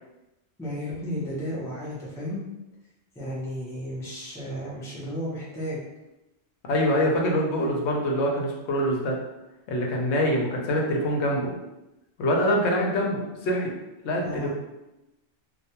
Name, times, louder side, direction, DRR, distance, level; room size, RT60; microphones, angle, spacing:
voice 1, 0.6-2.4 3.2-5.8 14.2-14.5, equal, 5° left, -6 dB, 0.4 m, -33 dB
voice 2, 6.7-9.2 9.7-11.5 12.2-13.7 14.0-14.5, equal, 80° left, -1 dB, 0.9 m, -24 dB
2.2 x 2.1 x 2.8 m, 0.96 s
omnidirectional pair, 1.1 m